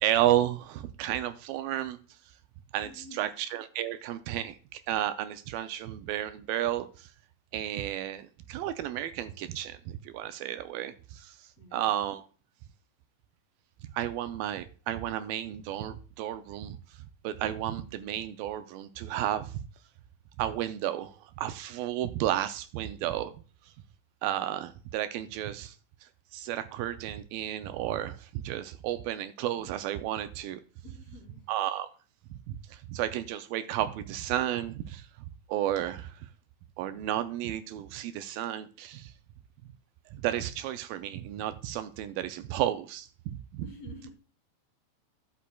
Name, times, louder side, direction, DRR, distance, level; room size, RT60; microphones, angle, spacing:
voice 1, 0.0-2.0 2.7-7.1 7.5-12.3 13.9-19.6 20.4-23.3 24.2-25.8 26.0-30.6 31.5-31.9 32.5-35.1 35.5-36.3 36.8-39.1 40.1-43.6, right 12 dB, 80° right, 2.2 m, -32 dB
voice 2, 2.8-3.3 11.6-11.9 30.8-31.5 43.6-44.1, left 3 dB, 50° left, 3.6 m, -49 dB
13.0 x 7.2 x 2.2 m
omnidirectional pair, 4.2 m